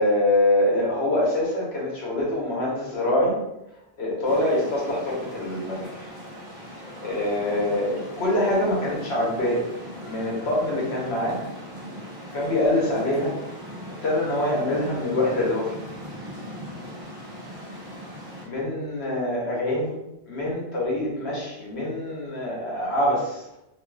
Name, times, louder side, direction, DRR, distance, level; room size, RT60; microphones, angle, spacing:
voice 1, 0.0-3.4 4.0-6.1 7.0-9.6 10.0-11.4 12.3-13.4 14.0-15.8 18.4-20.0 20.2-23.5, left 1 dB, 85° left, -4 dB, 1.1 m, -25 dB
sound 1, 4.2-18.5, equal, 35° right, 0.4 m, -39 dB
2.5 x 2.4 x 2.2 m, 0.89 s
omnidirectional pair, 1.1 m